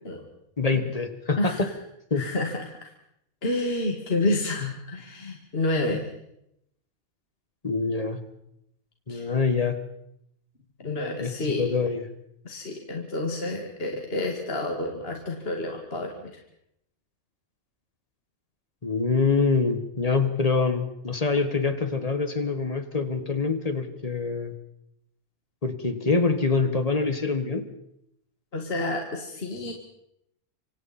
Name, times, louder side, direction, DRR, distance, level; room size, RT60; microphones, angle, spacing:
voice 1, 0.6-1.7 2.1-2.2 7.6-8.2 9.1-9.8 11.2-12.0 18.8-24.5 25.6-27.7, left 4 dB, 25° left, 9 dB, 1.6 m, -25 dB
voice 2, 2.2-2.9 3.4-6.1 9.1-9.3 10.8-11.6 12.4-16.3 28.5-29.7, left 2 dB, 45° left, 2 dB, 2.4 m, -29 dB
26.0 x 25.5 x 4.3 m, 0.78 s
omnidirectional pair, 1.5 m